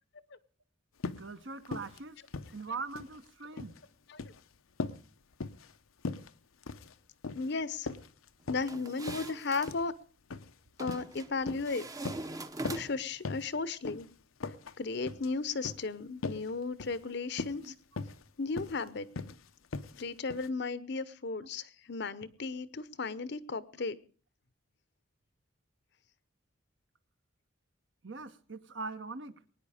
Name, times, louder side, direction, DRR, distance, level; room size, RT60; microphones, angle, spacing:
sound 1, 1.0-1.3 1.6-2.0 2.3-3.2 3.4-3.8 4.1-4.4 4.8-5.0 5.4-5.7 6.0-6.3 6.6-6.9 7.2-7.5 7.9-8.7 9.1-9.3 9.7-9.9 10.3-10.5 10.8-11.1 11.4-11.7 12.0-12.3 12.6-12.9 13.2-13.5 13.8-14.0 14.4-14.7 15.1-15.3 15.6-15.8 16.2-16.5 16.8-17.0 17.3-17.7 18.0-18.2 18.6-18.8 19.2-19.4 19.7-20.0 20.3-20.5, left 3 dB, 90° left, 0.7 m, -39 dB
voice 1, 1.2-2.2 2.5-3.8 17.6-17.8 21.4-21.5 28.0-29.4, right 4 dB, 60° right, 11 dB, 0.9 m, -42 dB
voice 2, 7.3-7.9 8.5-9.9 10.8-11.8 12.7-14.1 14.8-17.7 18.4-19.1 20.0-24.0, left 4 dB, 55° left, 16 dB, 0.7 m, -35 dB
sound 2, 8.6-9.8 10.8-11.3 11.7-13.1, right 2 dB, 15° right, 0.7 m, -42 dB
22.0 x 9.7 x 4.9 m, 0.40 s
head